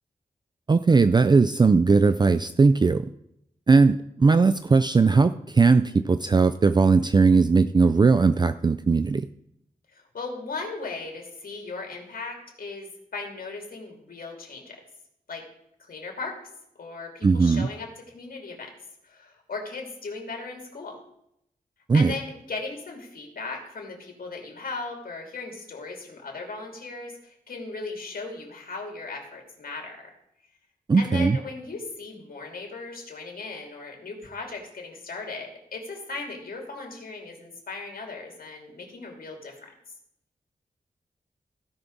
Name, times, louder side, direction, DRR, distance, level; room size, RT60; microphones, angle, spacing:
voice 1, 0.7-3.1 3.7-9.3 17.2-17.7 21.9-22.2 30.9-31.4, right 4 dB, 30° right, 11 dB, 0.3 m, -19 dB
voice 2, 9.9-14.8 15.3-15.4 15.8-16.4 16.8-17.9 18.1-18.7 19.0-21.0 21.9-30.1 31.0-39.7, left 3 dB, 80° left, 1 dB, 2.6 m, -37 dB
16.0 x 6.0 x 3.9 m, 0.77 s
wide cardioid pair, 105°, 15 cm